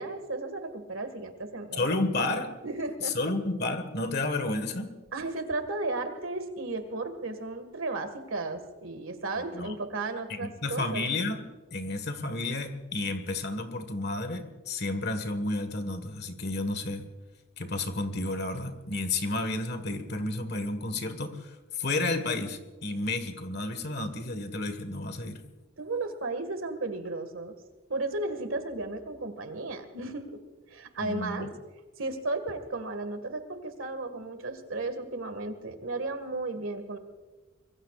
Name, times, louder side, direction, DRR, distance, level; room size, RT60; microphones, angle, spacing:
voice 1, 0.0-1.8 2.6-3.1 5.1-11.1 25.8-27.5 27.9-30.4 30.7-31.5 32.0-37.0, right 2 dB, 90° right, 8 dB, 2.0 m, -34 dB
voice 2, 1.7-2.6 3.0-5.0 9.4-9.8 10.3-11.4 11.7-17.0 17.6-25.4 31.0-31.5, left 2 dB, 55° left, 9 dB, 1.7 m, -31 dB
25.0 x 22.5 x 2.5 m, 1.2 s
head